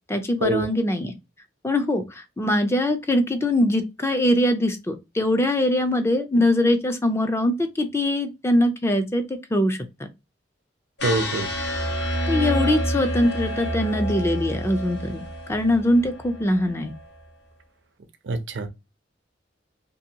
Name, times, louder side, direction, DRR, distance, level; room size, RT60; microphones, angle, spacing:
voice 1, 0.1-1.2 1.6-10.1 12.3-16.9, left 1 dB, 15° left, 0.4 m, -22 dB
sound 1, 11.0-17.1, equal, 65° left, 1.0 m, -28 dB
voice 2, 11.0-11.5 18.2-18.7, right 2 dB, 70° right, 0.5 m, -24 dB
2.7 x 2.5 x 2.7 m
head